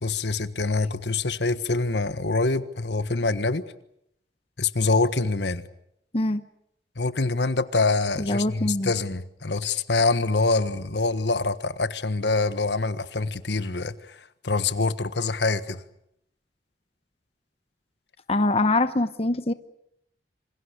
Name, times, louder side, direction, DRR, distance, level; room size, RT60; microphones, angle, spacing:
voice 1, 0.0-3.7 4.6-5.6 7.0-14.1 14.4-15.8, left 3 dB, 75° left, 1.4 m, -25 dB
voice 2, 8.2-8.9 18.3-19.5, left 2 dB, 35° left, 1.0 m, -23 dB
27.0 x 26.5 x 6.7 m
head